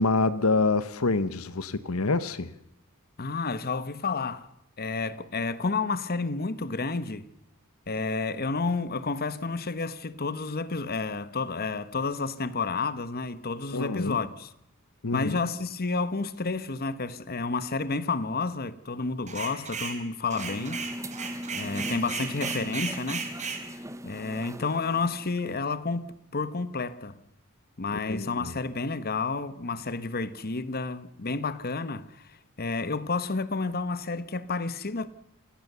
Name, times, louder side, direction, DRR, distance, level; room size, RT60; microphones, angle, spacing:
voice 1, 0.0-2.5 13.7-14.2 15.0-15.4 28.1-28.5, left 3 dB, 70° left, 1.0 m, -26 dB
voice 2, 3.2-4.5 4.8-7.2 7.9-14.5 15.1-20.8 21.5-23.3 23.6-27.2 27.8-35.1, left 4 dB, 45° left, 1.1 m, -30 dB
sound 1, 19.3-20.0 20.3-23.6, right 5 dB, 35° right, 4.1 m, -35 dB
sound 2, 20.3-25.6, equal, 15° right, 0.9 m, -39 dB
28.0 x 17.5 x 6.8 m
head